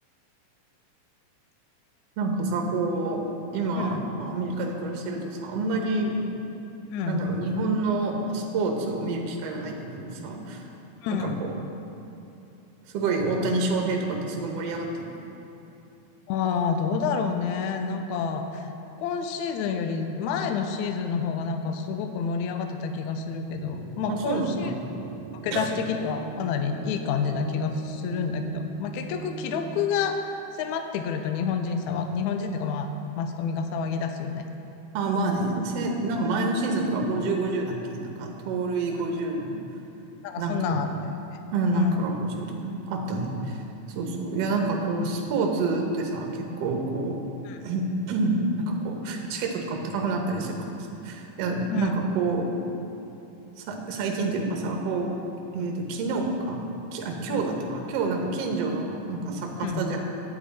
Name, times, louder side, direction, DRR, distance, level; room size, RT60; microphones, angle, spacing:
voice 1, 2.2-3.2 3.5-6.2 7.1-10.6 11.1-11.5 12.9-15.1 24.1-24.7 25.5-25.7 34.9-39.6 40.4-40.8 41.5-43.6 44.0-47.2 47.6-52.5 53.6-55.1 55.5-56.6 56.9-60.0, right 3 dB, 65° right, 1 dB, 1.7 m, -28 dB
voice 2, 6.9-7.2 11.0-11.4 16.3-18.7 19.0-24.7 25.4-32.9 33.2-34.5 40.2-41.4 41.7-42.0 47.4-47.6 51.7-51.9 55.5-55.7 57.3-57.4 59.6-59.9, left 6 dB, 85° left, 6 dB, 1.7 m, -29 dB
sound 1, 23.5-29.9, right 6 dB, 85° right, 1.7 m, -40 dB
9.5 x 9.3 x 4.1 m, 2.9 s
omnidirectional pair, 3.9 m